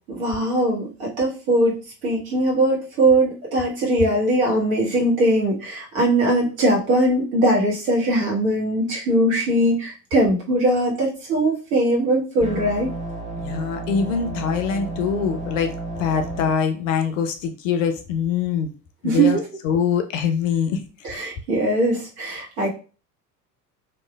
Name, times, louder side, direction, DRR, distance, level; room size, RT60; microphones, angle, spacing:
voice 1, 0.1-12.9 19.0-19.4 21.0-22.7, right 1 dB, 55° right, -2 dB, 1.4 m, -20 dB
sound 1, 12.4-16.5, right 2 dB, 15° right, 0.7 m, -32 dB
voice 2, 13.4-18.7 19.0-19.4 19.6-20.8, left 7 dB, 50° left, 7 dB, 0.6 m, -23 dB
3.0 x 2.6 x 2.3 m, 0.35 s
figure-of-eight pair, 75°, 50 cm